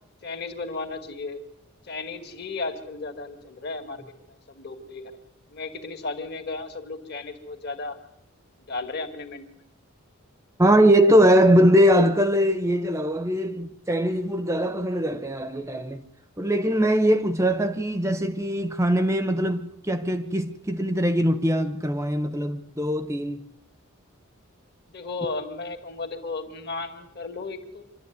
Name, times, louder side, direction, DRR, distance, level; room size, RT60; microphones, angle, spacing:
voice 1, 0.2-1.4 1.8-4.0 4.5-5.0 5.5-8.0 8.7-9.6 24.9-27.8, left 3 dB, 50° left, 2.4 m, -34 dB
voice 2, 10.6-16.0 16.4-23.4, equal, 15° right, 0.8 m, -21 dB
26.0 x 12.5 x 9.6 m
head